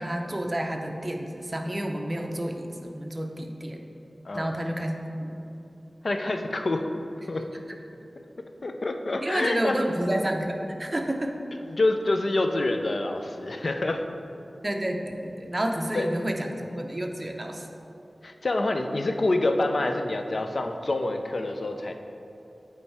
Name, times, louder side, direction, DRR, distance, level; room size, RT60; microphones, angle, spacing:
voice 1, 0.0-3.8 4.3-5.4 9.2-11.4 14.6-17.7, right 1 dB, 25° right, 3 dB, 0.6 m, -30 dB
voice 2, 6.0-6.9 7.3-7.4 8.6-9.8 11.7-14.0 15.9-16.1 18.2-21.9, left 2 dB, 60° left, 5 dB, 0.4 m, -27 dB
8.4 x 3.2 x 4.7 m, 2.9 s
wide cardioid pair, 80°, 0 cm